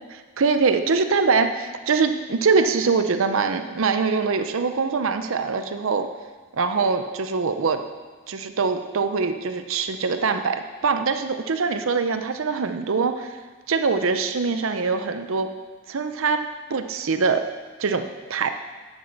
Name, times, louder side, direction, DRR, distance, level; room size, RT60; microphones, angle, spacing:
voice 1, 0.4-6.1 6.6-7.8 8.3-13.4 13.7-15.5 15.9-17.4 17.8-18.5, right 4 dB, 70° right, 8 dB, 0.6 m, -23 dB
9.4 x 8.3 x 5.9 m, 1.4 s
head